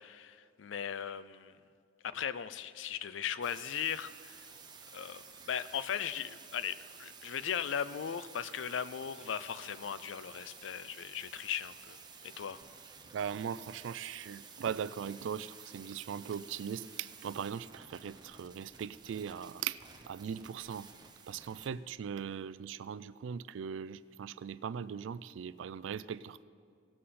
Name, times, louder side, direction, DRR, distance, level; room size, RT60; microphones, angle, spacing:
voice 1, 0.0-1.6 2.0-4.5 4.9-12.0 12.2-12.6, left 8 dB, 90° left, 15 dB, 0.4 m, -38 dB
sound 1, 3.4-21.7, right 5 dB, 25° right, 0.7 m, -53 dB
voice 2, 13.1-19.8 20.1-20.9 21.3-26.4, right 7 dB, 90° right, 17 dB, 0.3 m, -39 dB
18.0 x 7.6 x 4.2 m, 2.2 s
head